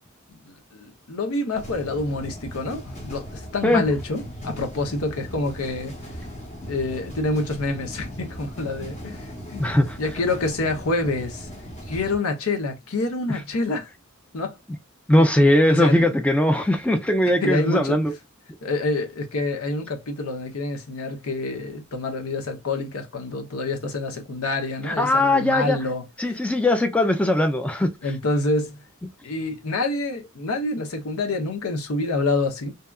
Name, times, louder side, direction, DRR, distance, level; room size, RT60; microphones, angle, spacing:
voice 1, 0.4-6.0 6.7-9.7 10.0-11.5 11.9-13.9 14.3-14.6 15.2-16.1 17.4-18.0 18.6-26.0 28.0-28.8 29.2-32.7, left 2 dB, 85° left, 0.8 m, -27 dB
sound 1, 1.5-12.2, equal, 35° left, 0.9 m, -38 dB
voice 2, 9.6-10.0 15.1-18.1 24.9-25.8 26.2-27.9, left 1 dB, 5° left, 0.3 m, -19 dB
2.7 x 2.3 x 2.2 m
head